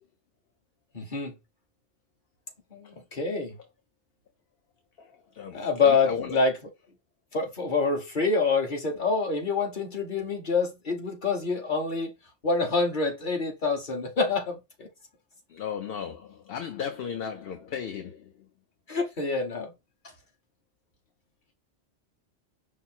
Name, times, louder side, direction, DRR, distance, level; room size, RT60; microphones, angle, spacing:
voice 1, 0.9-1.3 2.7-3.6 5.5-6.6 7.3-12.1 12.4-14.9 18.9-19.7, left 4 dB, 45° left, 1.4 m, -26 dB
voice 2, 5.3-6.4 15.5-18.3, left 7 dB, 60° left, 0.8 m, -35 dB
5.5 x 2.0 x 4.3 m
omnidirectional pair, 1.2 m